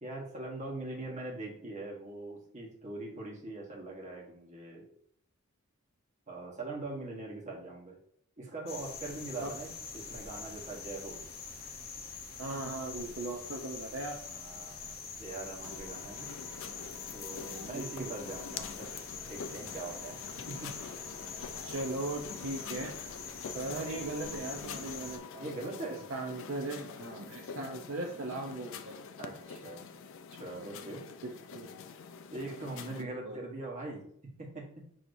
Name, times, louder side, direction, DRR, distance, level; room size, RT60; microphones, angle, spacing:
voice 1, 0.0-4.8 6.3-8.0 8.4-11.2 14.2-16.3 17.1-18.9 19.2-20.2 20.6-20.7 25.4-26.0 29.2-29.9 30.4-31.0 32.3-34.0 34.4-34.6, right 2 dB, 35° right, -2 dB, 1.2 m, -42 dB
sound 1, 8.7-25.2, left 5 dB, 45° left, 0.8 m, -44 dB
voice 2, 12.4-14.2 17.7-18.1 21.6-22.9 23.5-25.5 26.1-28.9 31.2-31.7 33.0-33.4, right 2 dB, 65° right, 1 dB, 0.6 m, -38 dB
sound 2, 15.6-33.0, left 6 dB, 65° left, 0.4 m, -46 dB
6.3 x 2.8 x 2.6 m, 0.66 s
head